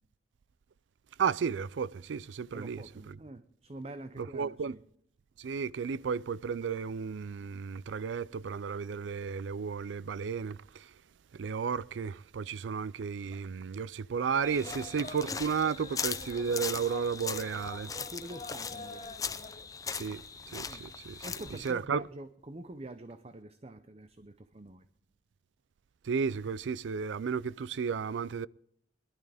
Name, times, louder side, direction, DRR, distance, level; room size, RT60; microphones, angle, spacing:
voice 1, 1.2-2.8 4.3-4.7 5.4-10.6 11.4-17.9 19.9-20.2 20.5-21.2 21.6-22.0 26.1-28.5, right 6 dB, 85° right, 0.4 m, -33 dB
voice 2, 2.5-4.8 18.0-19.1 20.6-20.9 21.2-24.9, right 1 dB, 35° right, 0.6 m, -46 dB
sound 1, 14.4-19.7, left 2 dB, 35° left, 1.8 m, -47 dB
sound 2, 14.4-21.7, left 6 dB, 20° left, 0.6 m, -39 dB
21.0 x 12.0 x 3.5 m
head